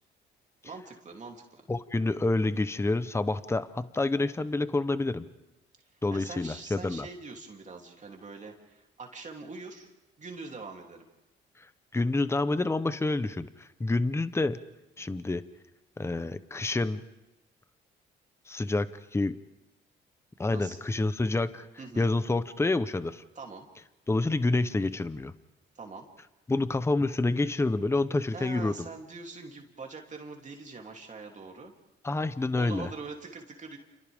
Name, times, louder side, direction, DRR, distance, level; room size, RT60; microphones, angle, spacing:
voice 1, 0.6-1.6 6.1-9.9 10.2-11.0 20.5-20.8 21.8-22.1 23.3-23.7 25.7-26.1 28.3-31.7 32.6-33.8, right 4 dB, 35° right, 1 dB, 3.0 m, -43 dB
voice 2, 1.7-5.3 6.0-7.1 11.6-11.7 11.9-14.6 15.0-15.4 16.0-17.0 18.5-19.3 20.4-21.7 22.0-23.2 24.1-25.3 26.5-28.9 32.0-32.9, left 2 dB, 15° left, 13 dB, 0.8 m, -28 dB
29.5 x 28.5 x 3.6 m, 0.97 s
cardioid pair, 90°, 20 cm